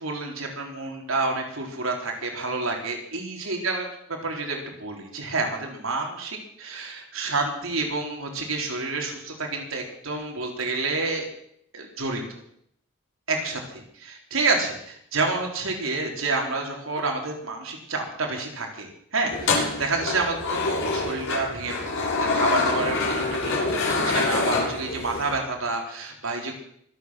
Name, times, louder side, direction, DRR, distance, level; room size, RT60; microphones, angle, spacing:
voice 1, 0.0-11.2 11.7-12.2 13.3-26.6, right 3 dB, 80° right, 1 dB, 4.0 m, -29 dB
sound 1, 19.3-25.3, left 3 dB, 70° left, 7.2 m, -26 dB
24.0 x 8.7 x 6.4 m, 0.69 s
head